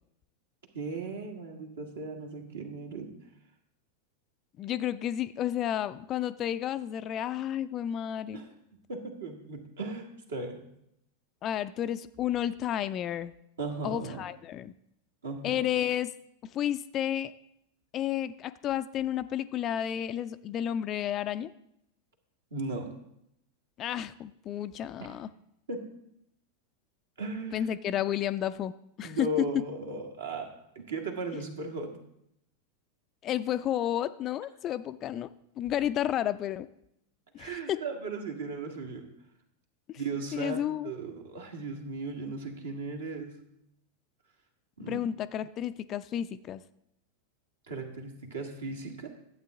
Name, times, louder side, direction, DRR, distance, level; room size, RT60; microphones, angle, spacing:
voice 1, 0.7-3.1 8.3-8.5 8.9-10.6 13.6-14.2 15.2-15.6 22.5-22.9 25.0-25.1 25.7-25.8 27.2-27.7 29.0-31.9 37.4-39.0 40.0-43.4 44.8-45.0 47.7-49.1, right 3 dB, 65° right, 3 dB, 1.6 m, -37 dB
voice 2, 4.6-8.5 11.4-13.3 13.8-14.7 15.4-16.1 16.5-17.3 17.9-21.5 23.8-25.3 27.5-28.7 29.0-29.3 33.2-35.3 35.6-36.7 37.3-37.8 40.3-40.9 44.9-46.6, left 11 dB, 30° left, 13 dB, 0.3 m, -31 dB
12.0 x 8.2 x 3.6 m, 0.77 s
figure-of-eight pair, 90°, 0 cm